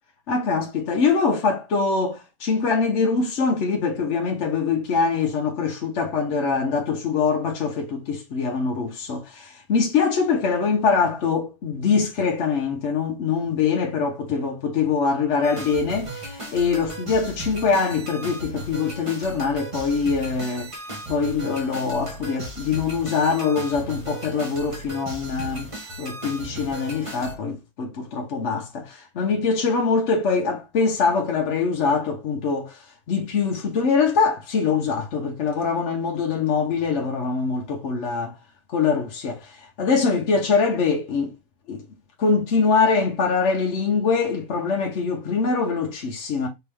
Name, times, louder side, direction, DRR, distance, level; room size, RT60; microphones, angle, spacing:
voice 1, 0.3-20.8 21.1-38.4 38.7-41.4 41.7-41.8 42.2-46.5, left 5 dB, 55° left, 1.0 m, -23 dB
sound 1, 15.4-27.3, right 1 dB, 25° right, 1.0 m, -36 dB
4.5 x 3.0 x 3.4 m
omnidirectional pair, 1.6 m